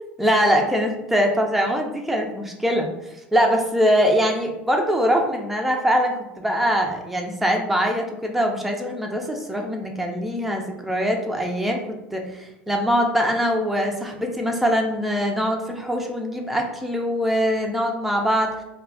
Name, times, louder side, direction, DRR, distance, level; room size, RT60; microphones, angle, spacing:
voice 1, 0.2-2.9 3.3-18.5, equal, 5° right, 2 dB, 0.5 m, -22 dB
2.4 x 2.3 x 3.4 m, 0.90 s
supercardioid pair, 95°, 6 cm